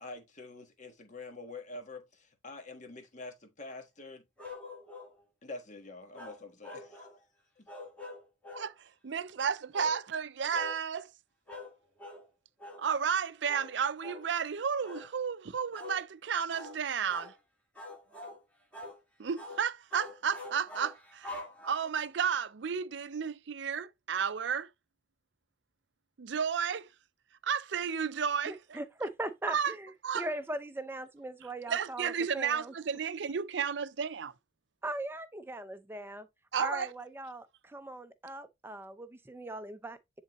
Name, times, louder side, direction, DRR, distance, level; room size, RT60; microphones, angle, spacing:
voice 1, 0.0-4.2 5.4-7.1 7.6-7.7, left 3 dB, 40° left, 1.3 m, -46 dB
sound 1, 4.4-5.1 6.1-7.2 7.7-8.7 9.7-10.0 10.5-10.8 11.5-11.7 12.0-12.2 12.6-12.8 13.5-13.7 14.0-14.3 14.8-15.1 15.7-16.0 16.5-16.8 17.1-17.3 17.8-18.4 18.7-19.0 19.4-19.6 19.9-22.0, left 2 dB, 5° left, 1.7 m, -45 dB
voice 2, 9.0-11.1 12.8-17.3 19.2-24.7 26.2-26.9 27.4-28.8 29.5-29.7 30.0-30.3 31.7-34.3 36.5-36.9, right 7 dB, 65° right, 0.5 m, -32 dB
voice 3, 28.4-32.7 34.8-36.3 36.6-40.2, right 1 dB, 10° right, 0.6 m, -40 dB
10.0 x 3.8 x 3.0 m
head